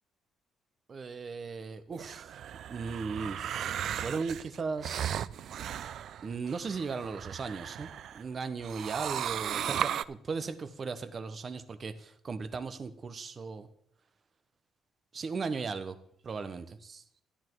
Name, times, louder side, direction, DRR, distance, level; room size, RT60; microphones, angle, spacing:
voice 1, 0.9-2.3 2.7-3.6 4.0-5.2 6.2-13.7 15.1-16.0 16.2-17.0, right 4 dB, 35° right, 11 dB, 0.9 m, -37 dB
sound 1, 1.9-8.2 8.6-10.0, right 10 dB, 65° right, 0.4 m, -36 dB
12.0 x 10.0 x 4.6 m, 0.68 s
cardioid pair, 130°, 0 cm